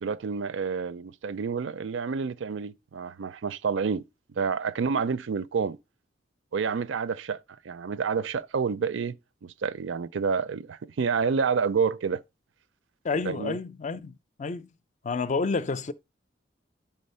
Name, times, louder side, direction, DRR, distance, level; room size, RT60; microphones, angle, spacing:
voice 1, 0.0-4.0 4.4-5.8 6.5-12.2 13.2-13.6, right 5 dB, 80° right, 0.5 m, -29 dB
voice 2, 13.0-14.7 15.0-15.9, left 4 dB, 40° left, 0.4 m, -30 dB
10.5 x 3.6 x 5.4 m
head